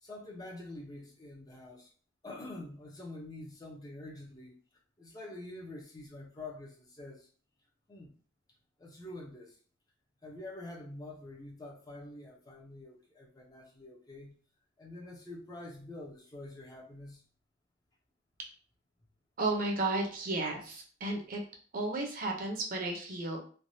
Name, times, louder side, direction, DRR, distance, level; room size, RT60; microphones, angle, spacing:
voice 1, 0.0-1.9 2.2-4.6 5.0-7.3 7.9-8.2 8.8-9.6 10.2-14.3 14.8-17.2, left 2 dB, 20° left, -2 dB, 0.6 m, -46 dB
voice 2, 19.4-21.4 21.7-23.4, right 2 dB, 50° right, 0 dB, 0.7 m, -33 dB
3.3 x 2.2 x 2.6 m, 0.42 s
head